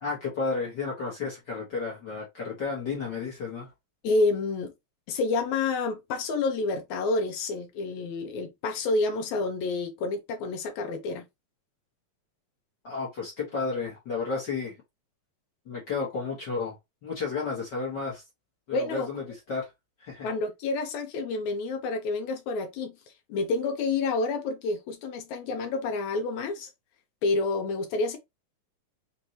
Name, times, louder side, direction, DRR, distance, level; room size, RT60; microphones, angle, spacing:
voice 1, 0.0-3.7 12.8-14.7 15.7-16.7 17.0-18.2 18.7-19.2 19.5-19.7 20.0-20.3, left 4 dB, 50° left, 1.4 m, -32 dB
voice 2, 4.0-4.7 5.1-11.2 18.7-19.1 20.2-22.9 23.3-26.7 27.2-28.2, left 3 dB, 75° left, 2.1 m, -29 dB
5.4 x 2.6 x 2.9 m
omnidirectional pair, 3.5 m